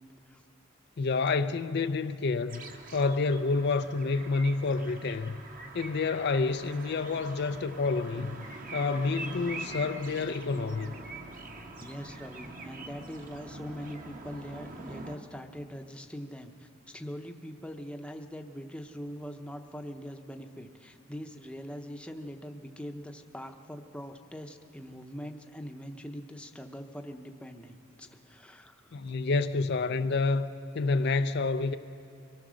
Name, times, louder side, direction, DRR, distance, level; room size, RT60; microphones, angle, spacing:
voice 1, 1.0-2.6 2.9-5.4 5.7-8.4 8.7-10.9 28.9-31.8, left 3 dB, 50° left, 0.4 m, -28 dB
Blackbird - Birdsong - Suburban - Park, 2.5-15.2, right 2 dB, 40° right, 1.2 m, -44 dB
voice 2, 11.7-29.0, equal, 5° left, 0.8 m, -42 dB
23.5 x 17.5 x 6.3 m
head